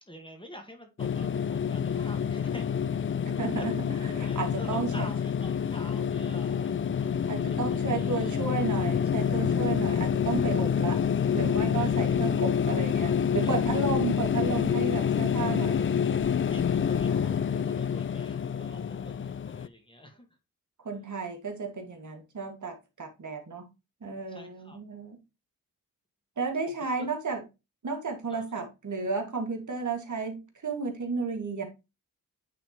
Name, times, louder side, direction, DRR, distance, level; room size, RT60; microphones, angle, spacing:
voice 1, 0.1-2.9 3.5-3.7 4.2-8.4 11.8-12.1 13.4-13.7 16.5-18.8 19.0-20.3 24.3-24.8 26.7-27.1 28.3-28.4, equal, 15° left, 1.6 m, -48 dB
sound 1, 1.0-19.7, left 7 dB, 35° left, 0.4 m, -27 dB
voice 2, 3.2-5.1 7.3-11.0 11.3-16.0 20.8-23.7 24.0-25.2 26.4-27.4 27.8-31.6, right 4 dB, 60° right, 2.0 m, -33 dB
9.1 x 4.2 x 3.0 m
cardioid pair, 75°, 34 cm